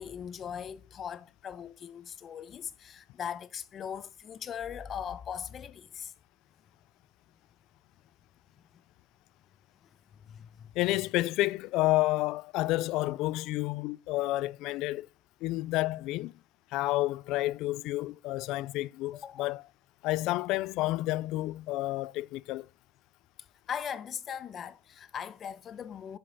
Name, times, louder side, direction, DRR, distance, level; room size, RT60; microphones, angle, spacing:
voice 1, 0.0-6.1 10.3-10.7 19.1-19.5 23.7-26.2, left 8 dB, 35° left, 0.9 m, -39 dB
voice 2, 10.7-15.1 15.4-16.3 16.7-19.6 20.0-22.7, left 18 dB, 60° left, 0.3 m, -30 dB
10.0 x 5.5 x 4.0 m
supercardioid pair, 105°, 0 cm